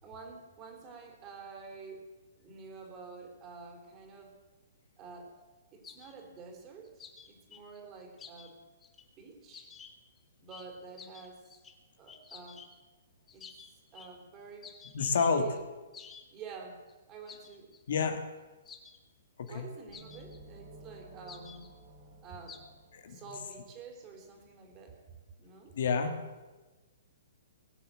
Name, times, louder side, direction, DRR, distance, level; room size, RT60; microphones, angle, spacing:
voice 1, 0.0-2.1 2.4-4.4 5.0-5.3 5.7-8.6 9.2-9.7 10.4-11.6 12.0-12.7 13.3-13.5 13.9-14.7 15.3-15.6 16.3-16.8 17.1-17.7 19.4-21.7 22.2-22.6 23.1-25.0 25.4-25.8, right 4 dB, 25° right, 3 dB, 3.7 m, -49 dB
sound 1, 5.8-6.1 6.8-8.5 8.8-9.0 9.5-10.2 10.5-10.7 11.0-11.7 12.1-12.8 13.3-14.1 14.6-15.3 15.9-16.3 16.5-16.6 16.9-17.0 17.3-17.8 18.6-19.0 19.5-19.6 19.9-20.4 21.3-21.7 22.5-22.6, left 6 dB, 15° left, 1.4 m, -51 dB
voice 2, 14.9-15.5 17.9-18.2 19.4-19.6 22.9-23.2 25.8-26.1, left 5 dB, 65° left, 7 dB, 1.8 m, -28 dB
sound 2, 19.9-23.6, right 1 dB, 65° right, 5.2 m, -54 dB
20.5 x 7.3 x 7.6 m, 1.2 s
hypercardioid pair, 135°, 0 cm